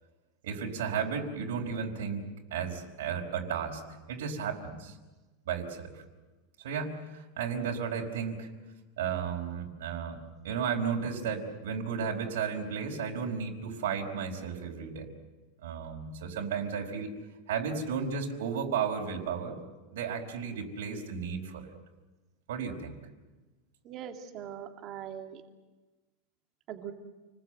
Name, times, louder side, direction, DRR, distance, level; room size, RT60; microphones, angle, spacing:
voice 1, 0.4-2.2 2.5-3.8 4.1-5.0 5.5-6.0 6.6-8.5 9.0-15.1 15.6-17.1 17.5-19.6 19.9-21.7 22.5-22.9, right 6 dB, 85° right, 1 dB, 4.6 m, -34 dB
voice 2, 23.8-25.4 26.7-26.9, right 9 dB, 30° right, 4 dB, 2.3 m, -41 dB
29.5 x 20.5 x 7.9 m, 1.2 s
supercardioid pair, 180°, 0 cm